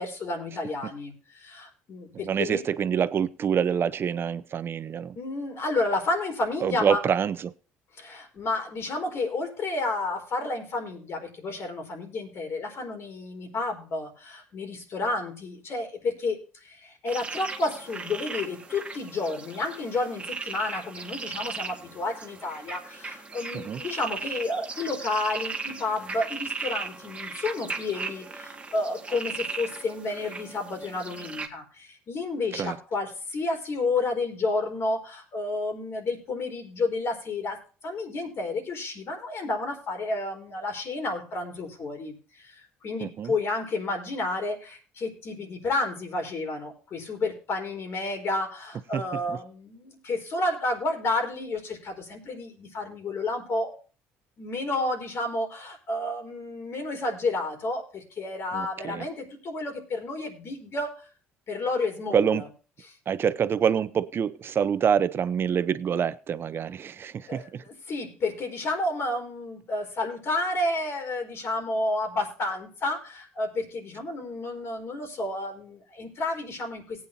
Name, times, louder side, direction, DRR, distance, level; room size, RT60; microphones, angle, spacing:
voice 1, 0.0-2.6 5.2-7.0 8.0-53.8 54.4-61.0 61.5-62.5 67.3-77.1, left 2 dB, 50° left, 4 dB, 4.3 m, -31 dB
voice 2, 2.2-5.2 6.6-7.5 23.5-23.8 32.5-32.8 43.0-43.3 48.9-49.0 49.3-49.4 58.5-59.1 62.1-62.4 63.1-67.6, right 7 dB, 45° right, 16 dB, 0.7 m, -26 dB
sound 1, 17.1-31.5, right 4 dB, 20° right, 1.6 m, -37 dB
18.5 x 8.8 x 2.8 m, 0.37 s
supercardioid pair, 80°, 5 cm